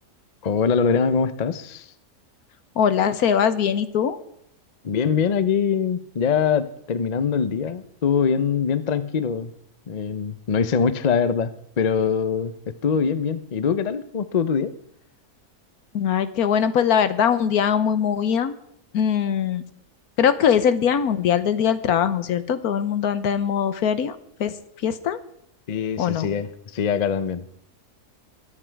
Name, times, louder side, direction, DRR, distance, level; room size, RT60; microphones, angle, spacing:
voice 1, 0.4-1.9 4.8-9.5 9.9-11.5 11.8-14.7 25.7-27.5, left 6 dB, 55° left, 13 dB, 0.4 m, -23 dB
voice 2, 2.8-4.2 15.9-18.6 18.9-19.6 20.2-24.5 24.8-25.2 26.0-26.3, left 8 dB, 75° left, 12 dB, 1.3 m, -21 dB
22.0 x 8.5 x 4.6 m, 0.74 s
omnidirectional pair, 1.7 m